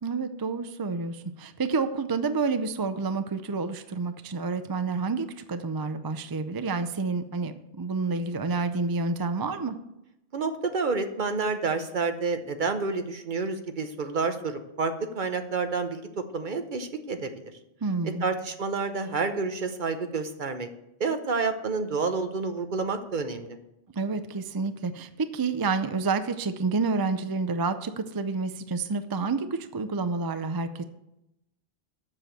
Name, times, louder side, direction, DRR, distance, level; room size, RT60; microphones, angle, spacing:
voice 1, 0.0-9.8 17.8-18.3 23.9-30.8, right 4 dB, 35° right, 10 dB, 0.4 m, -29 dB
voice 2, 10.3-16.0 16.3-17.4 18.2-20.7 21.0-23.6, right 4 dB, 50° right, 8 dB, 1.0 m, -29 dB
7.6 x 6.8 x 7.6 m, 0.86 s
omnidirectional pair, 1.1 m